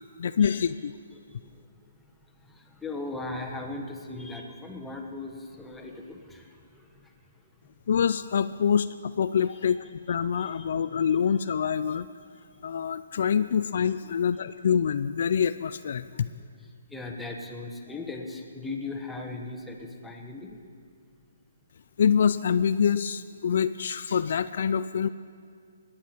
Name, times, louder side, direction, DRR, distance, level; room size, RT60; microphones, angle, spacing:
voice 1, 0.2-0.9 7.9-12.1 12.6-16.3 22.0-25.1, left 7 dB, 60° left, 13 dB, 0.3 m, -25 dB
voice 2, 2.4-7.1 10.4-10.6 14.0-14.2 16.9-20.6, left 2 dB, 5° left, 1 dB, 1.2 m, -38 dB
18.5 x 10.0 x 4.5 m, 2.1 s
hypercardioid pair, 150°, 0 cm